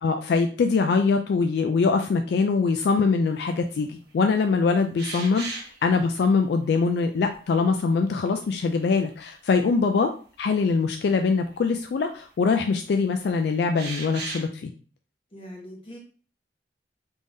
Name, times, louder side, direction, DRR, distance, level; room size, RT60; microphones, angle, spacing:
voice 1, 0.0-5.6 5.8-10.1 10.4-14.7, left 4 dB, 70° left, 6 dB, 0.3 m, -23 dB
sound 1, 5.0-5.8 7.3-7.4 8.3-9.1 9.5-9.6 11.5-11.6 13.7-14.5, right 3 dB, 70° right, 1.2 m, -35 dB
voice 2, 15.3-16.0, equal, 30° left, -2 dB, 1.2 m, -42 dB
3.5 x 3.4 x 2.6 m, 0.39 s
head